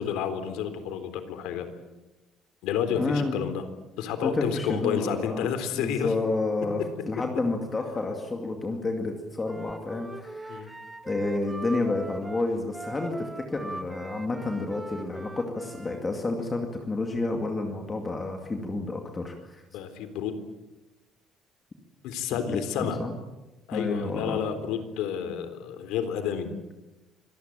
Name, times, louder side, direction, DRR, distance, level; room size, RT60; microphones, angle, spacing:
voice 1, 0.0-1.7 2.6-3.6 4.0-6.1 10.5-10.7 19.7-20.3 22.0-23.0 23.7-26.5, left 8 dB, 85° left, 10 dB, 3.8 m, -30 dB
voice 2, 3.0-3.4 4.2-10.8 11.1-19.8 22.4-23.1 23.7-24.4, left 2 dB, 15° left, 3 dB, 2.3 m, -30 dB
Wind instrument woodwind instrument, 9.4-16.0, right 2 dB, 10° right, 1.8 m, -41 dB
25.5 x 19.5 x 9.0 m, 1.0 s
cardioid pair, 175°, 0 cm